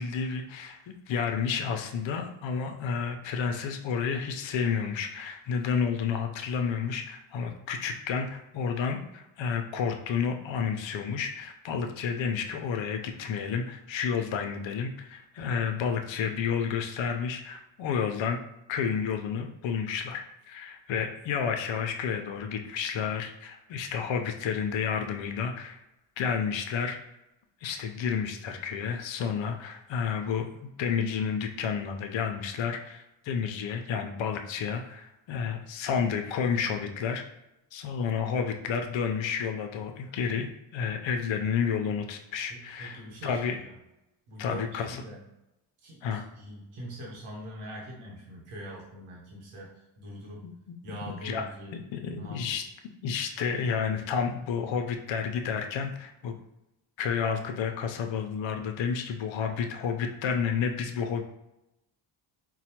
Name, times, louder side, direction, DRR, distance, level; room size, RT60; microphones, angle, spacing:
voice 1, 0.0-18.4 18.7-25.8 26.2-27.0 27.6-37.2 37.7-43.6 44.4-45.0 46.0-46.2 50.4-51.0 51.2-51.5 51.9-52.6 53.0-56.3 57.0-61.2, left 6 dB, 65° left, 5 dB, 0.7 m, -31 dB
voice 2, 42.5-43.7 44.3-45.3 45.8-50.5 50.8-51.8 52.1-52.6, right 1 dB, 90° right, -3 dB, 1.1 m, -43 dB
4.0 x 2.2 x 2.9 m, 0.89 s
supercardioid pair, 60°, 49 cm